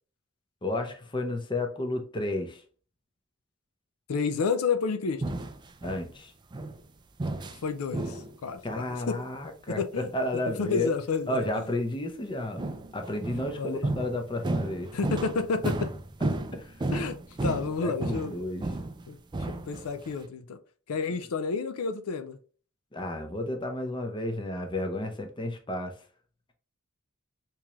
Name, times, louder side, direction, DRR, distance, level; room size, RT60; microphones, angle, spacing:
voice 1, 0.6-2.6 5.8-6.3 8.6-10.9 11.3-14.9 16.5-16.8 17.8-18.7 22.9-26.0, left 1 dB, 20° left, 0.6 m, -32 dB
voice 2, 4.1-5.2 7.6-9.2 9.8-10.1 10.6-11.7 13.6-13.9 14.9-15.9 16.9-17.2 17.4-18.4 19.1-20.6 20.9-22.4, left 5 dB, 80° left, 0.5 m, -30 dB
sound 1, 5.2-6.1 6.5-6.8 7.2-7.6 7.9-8.4 8.7-8.9 12.6-19.1 19.3-20.1, right 2 dB, 20° right, 0.3 m, -33 dB
3.6 x 2.9 x 3.0 m
head